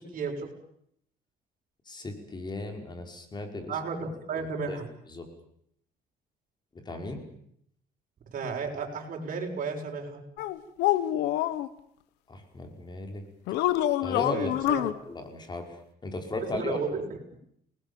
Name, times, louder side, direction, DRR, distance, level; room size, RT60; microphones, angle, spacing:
voice 1, 0.1-0.5 3.7-4.9 8.3-10.2 14.3-14.9 16.6-17.0, right 5 dB, 50° right, 1 dB, 6.8 m, -33 dB
voice 2, 1.9-3.7 4.4-4.8 5.1-5.3 6.8-7.2 12.3-13.2 14.0-14.5 15.1-15.7 16.0-16.8, left 2 dB, 25° left, 4 dB, 5.3 m, -36 dB
sound 1, 10.4-11.7 13.5-14.9, left 14 dB, 90° left, 1.4 m, -26 dB
30.0 x 20.5 x 7.3 m, 0.70 s
cardioid pair, 110°, 17 cm